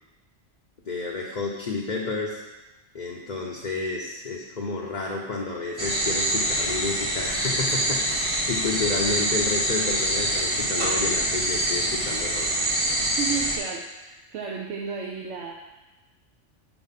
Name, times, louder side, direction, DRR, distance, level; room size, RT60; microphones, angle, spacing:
voice 1, 0.9-2.4 2.9-12.5, left 3 dB, 45° left, -2 dB, 0.8 m, -30 dB
sound 1, 5.8-13.6, right 1 dB, 30° right, 1.1 m, -25 dB
voice 2, 13.2-15.5, right 6 dB, 75° right, 1 dB, 0.9 m, -33 dB
7.0 x 4.3 x 5.7 m, 1.1 s
omnidirectional pair, 1.2 m